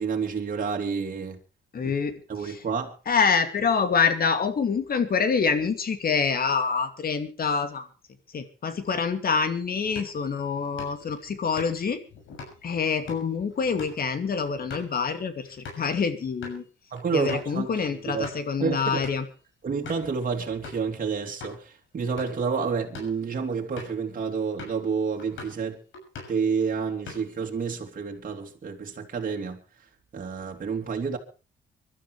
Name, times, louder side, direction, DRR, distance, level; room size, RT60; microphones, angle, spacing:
voice 1, 0.0-1.4 1.8-1.9 2.3-2.9 16.9-18.3 18.6-19.1 19.6-25.8 26.3-29.6 30.1-31.2, right 5 dB, 45° right, 2.9 m, -29 dB
voice 2, 1.7-2.1 3.1-7.9 8.3-12.0 12.6-16.6 17.1-19.2, left 5 dB, 50° left, 2.5 m, -26 dB
sound 1, 9.8-15.9 16.3-16.6 17.0-17.1 17.3-17.5 18.0-18.5 19.0-19.3 19.8-20.1 20.6-20.9 21.4-21.6 22.0-22.5 22.8-23.2 23.8-24.0 24.6-24.9 25.2-25.6 25.9-26.5 26.8-27.5, left 3 dB, 75° left, 6.6 m, -43 dB
24.5 x 12.5 x 3.3 m
cardioid pair, 90°, 20 cm